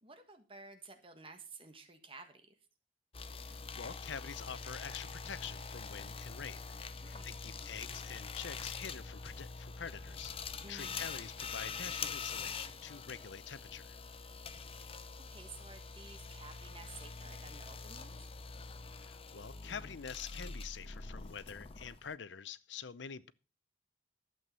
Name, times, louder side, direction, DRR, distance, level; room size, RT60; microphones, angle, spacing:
voice 1, 0.0-2.5 7.0-7.4 10.6-11.1 14.8-14.9 15.3-18.3, right 3 dB, 30° right, 1.5 m, -53 dB
sound 1, 3.1-22.1, left 5 dB, 30° left, 0.7 m, -45 dB
voice 2, 3.8-6.7 7.0-10.3 10.7-14.0 19.0-23.3, left 7 dB, 90° left, 0.7 m, -46 dB
12.5 x 7.8 x 5.5 m
head